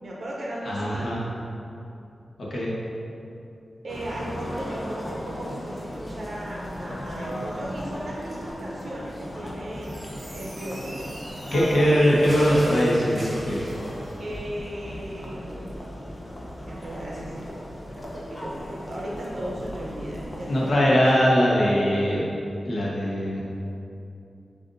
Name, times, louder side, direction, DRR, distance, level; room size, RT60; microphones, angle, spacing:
voice 1, 0.0-1.1 3.8-10.1 10.3-10.9 11.5-12.3 14.2-16.3 16.7-17.3 18.3-18.6 18.8-21.3, right 1 dB, 60° right, -4 dB, 0.6 m, -36 dB
voice 2, 0.7-1.2 2.4-2.7 11.5-13.7 20.5-22.2 22.6-23.4, equal, 65° left, -6 dB, 1.0 m, -21 dB
sound 1, 3.9-20.7, equal, 30° left, 0.6 m, -37 dB
sound 2, 9.7-14.2, equal, 35° right, 0.9 m, -41 dB
7.5 x 2.6 x 2.6 m, 2.7 s
wide cardioid pair, 110°, 0 cm